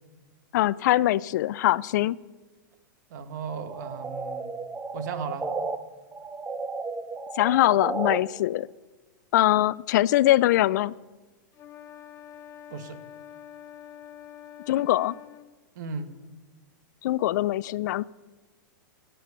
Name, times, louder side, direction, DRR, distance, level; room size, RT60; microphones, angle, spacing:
voice 1, 0.5-2.2 7.4-8.7 9.3-10.9 14.7-15.1 17.0-18.1, left 15 dB, 60° left, 21 dB, 0.4 m, -22 dB
voice 2, 3.1-4.5 4.9-5.5 12.7-13.0 15.8-16.1, right 5 dB, 60° right, 8 dB, 1.6 m, -35 dB
sound 1, 3.7-5.8 6.1-8.2, right 4 dB, 10° right, 0.7 m, -33 dB
sound 2, 11.5-15.5, left 9 dB, 25° left, 0.7 m, -46 dB
16.5 x 7.6 x 6.9 m, 1.2 s
hypercardioid pair, 135°, 11 cm